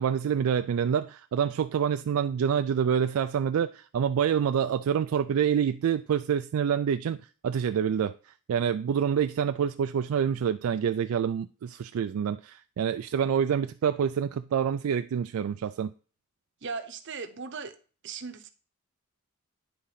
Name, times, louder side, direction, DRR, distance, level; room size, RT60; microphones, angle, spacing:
voice 1, 0.0-7.2 7.4-15.9, right 8 dB, 75° right, 0.3 m, -27 dB
voice 2, 16.6-17.7 18.0-18.5, right 5 dB, 55° right, 0.8 m, -37 dB
10.0 x 3.8 x 5.6 m
head